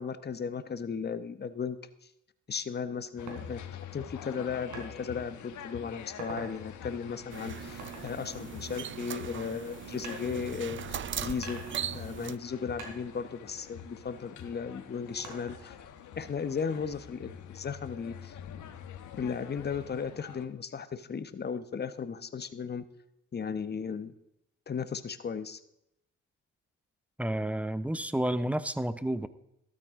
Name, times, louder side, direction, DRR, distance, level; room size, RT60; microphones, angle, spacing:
voice 1, 0.0-1.8 2.5-3.6 3.9-11.6 11.9-15.7 16.2-18.4 19.2-22.8 23.3-24.1 24.7-25.6, left 6 dB, 35° left, 12 dB, 1.0 m, -36 dB
sound 1, 3.2-20.5, left 8 dB, 75° left, 1.3 m, -46 dB
sound 2, 3.3-3.4 4.7-4.9 5.4-5.7 6.0-6.5 7.8-9.3 10.0-10.9 11.4-12.5 12.8-14.4 15.2-15.8, right 2 dB, 80° right, 3.6 m, -45 dB
sound 3, 7.3-12.4, right 9 dB, 40° right, 0.5 m, -39 dB
voice 2, 27.2-29.3, right 1 dB, 5° right, 14 dB, 0.8 m, -30 dB
13.5 x 12.5 x 3.7 m, 0.82 s
cardioid pair, 90°, 30 cm